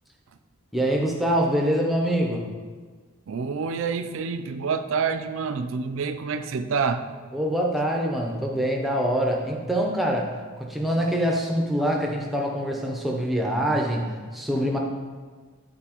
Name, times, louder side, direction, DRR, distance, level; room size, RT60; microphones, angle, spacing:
voice 1, 0.7-2.5 7.3-14.8, equal, ahead, -1 dB, 0.6 m, -25 dB
voice 2, 3.3-7.1, right 5 dB, 65° right, 8 dB, 0.4 m, -27 dB
8.9 x 4.1 x 2.9 m, 1.5 s
head